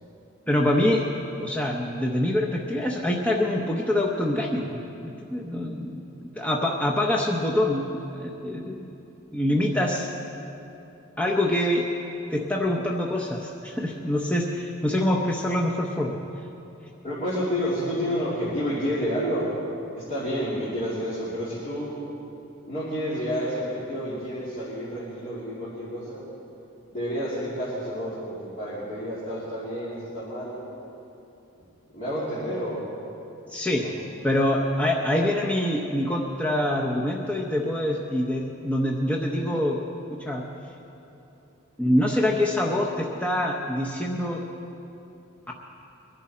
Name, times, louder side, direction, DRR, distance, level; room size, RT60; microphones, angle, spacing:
voice 1, 0.5-1.1 1.4-8.9 9.3-10.1 11.2-11.9 12.3-16.2 33.5-33.9 34.2-39.8 40.2-40.4 41.8-44.4 45.5-45.6, left 1 dB, 5° left, -1 dB, 0.7 m, -25 dB
voice 2, 17.0-19.5 20.0-21.9 22.7-26.2 26.9-30.5 31.9-32.8 33.7-34.0, equal, 35° left, -11 dB, 2.9 m, -30 dB
23.0 x 11.0 x 4.3 m, 2.9 s
head